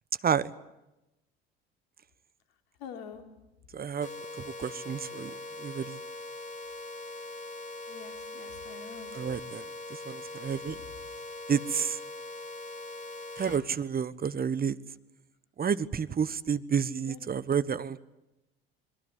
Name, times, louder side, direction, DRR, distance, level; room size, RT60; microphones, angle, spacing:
voice 1, 2.8-3.2 7.9-9.4 10.8-11.0 17.1-17.2, left 7 dB, 70° left, 5 dB, 3.6 m, -46 dB
voice 2, 3.7-4.1 4.4-6.0 9.1-10.8 11.5-12.0 13.4-14.8 15.6-18.0, right 7 dB, 30° right, 16 dB, 1.3 m, -30 dB
sound 1, 4.0-13.6, left 2 dB, 25° left, 4.5 m, -42 dB
29.5 x 21.5 x 8.3 m, 0.97 s
hypercardioid pair, 65°, 30 cm